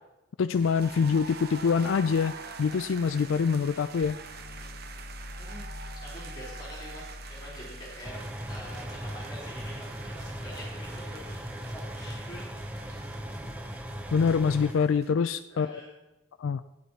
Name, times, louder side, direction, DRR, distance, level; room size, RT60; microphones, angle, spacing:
voice 1, 0.4-4.2 14.1-15.8 16.4-16.6, left 5 dB, 70° left, 10 dB, 0.4 m, -25 dB
sound 1, 0.5-15.1, right 5 dB, 45° right, 0.8 m, -46 dB
sound 2, 0.8-12.5 13.4-13.8, left 1 dB, 45° left, 0.7 m, -47 dB
voice 2, 6.0-8.2 8.5-12.5 15.5-15.9, left 1 dB, 20° left, -6 dB, 3.7 m, -46 dB
sound 3, 8.0-14.7, equal, 5° right, 0.6 m, -38 dB
12.5 x 9.7 x 4.4 m, 0.95 s
head